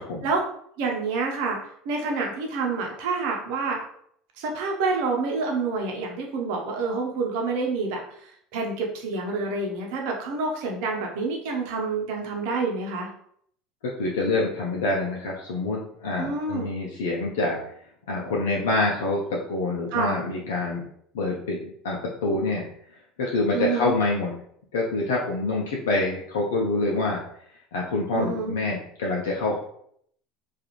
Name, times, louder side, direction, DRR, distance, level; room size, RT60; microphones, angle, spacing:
voice 1, 0.8-1.6 1.8-3.8 4.4-8.0 8.5-13.1 16.2-16.7 19.9-20.2 23.5-23.9 28.1-28.6, right 4 dB, 70° right, 0 dB, 0.7 m, -27 dB
voice 2, 13.8-17.6 18.1-20.8 21.1-22.6 23.2-24.3 24.7-27.2 27.7-29.6, left 2 dB, 90° left, -3 dB, 0.5 m, -26 dB
2.4 x 2.4 x 3.0 m, 0.67 s
supercardioid pair, 100°, 0 cm